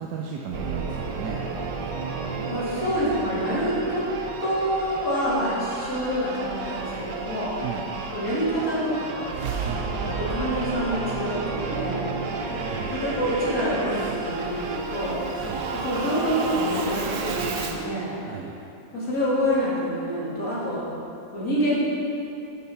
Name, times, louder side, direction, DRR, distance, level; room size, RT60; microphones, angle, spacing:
voice 1, 0.0-1.4 7.5-7.9 9.3-10.2 12.6-13.0 15.3-15.6 18.2-18.5, right 6 dB, 75° right, 0 dB, 1.2 m, -35 dB
Singing / Musical instrument, 0.5-17.9, right 4 dB, 90° right, 1.4 m, -31 dB
voice 2, 2.5-4.1 4.4-7.5 8.1-9.3 10.1-12.0 12.9-15.2 15.7-18.1 18.9-20.9 21.3-21.8, equal, 55° left, -8 dB, 2.7 m, -27 dB
8.2 x 7.3 x 4.4 m, 2.8 s
omnidirectional pair, 1.8 m